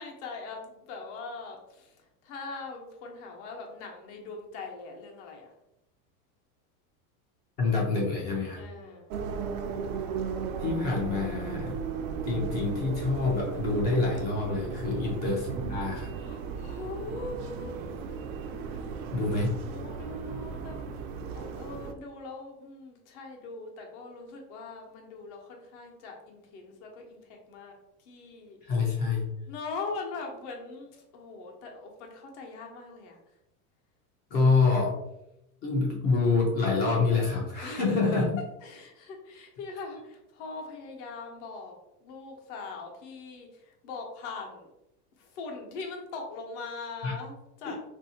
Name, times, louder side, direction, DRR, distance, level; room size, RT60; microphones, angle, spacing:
voice 1, 0.0-5.5 8.6-9.1 14.9-15.2 16.1-17.8 18.7-19.0 19.6-27.7 28.0-28.6 29.5-33.2 37.6-37.9 38.6-41.8 42.0-44.7 45.2-47.8, left 3 dB, 55° left, 1 dB, 0.9 m, -41 dB
voice 2, 7.6-8.6 10.6-11.7 12.2-16.1 19.1-19.6 28.6-29.3 34.3-34.9 35.6-38.2 47.0-47.1, left 3 dB, 25° left, -2 dB, 0.4 m, -26 dB
sound 1, 9.1-21.9, right 6 dB, 80° right, 0.6 m, -36 dB
3.5 x 2.7 x 2.7 m, 0.87 s
supercardioid pair, 160°, 42 cm